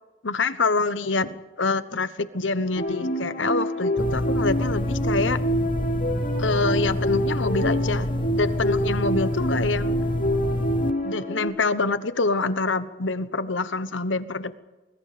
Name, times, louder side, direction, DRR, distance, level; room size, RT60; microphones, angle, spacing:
voice 1, 0.2-5.4 6.4-10.0 11.0-14.6, left 3 dB, 80° left, 13 dB, 1.2 m, -26 dB
sound 1, 2.7-11.5, equal, 45° left, 4.0 m, -27 dB
sound 2, 4.0-10.9, left 1 dB, 25° left, 0.7 m, -27 dB
24.0 x 21.5 x 5.2 m, 1.2 s
head